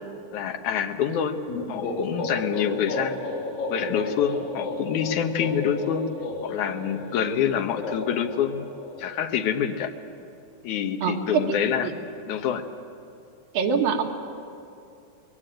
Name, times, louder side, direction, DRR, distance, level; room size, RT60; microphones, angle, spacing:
voice 1, 0.3-1.4 1.7-3.2 3.7-6.1 6.4-8.7 9.0-9.9 10.6-11.9 12.3-12.6, left 8 dB, 70° left, 6 dB, 2.4 m, -26 dB
sound 1, 1.5-9.2, left 3 dB, 90° left, 5.7 m, -33 dB
voice 2, 11.0-11.9 13.5-14.0, right 6 dB, 80° right, 2 dB, 3.3 m, -25 dB
21.5 x 17.5 x 9.1 m, 2.6 s
omnidirectional pair, 3.9 m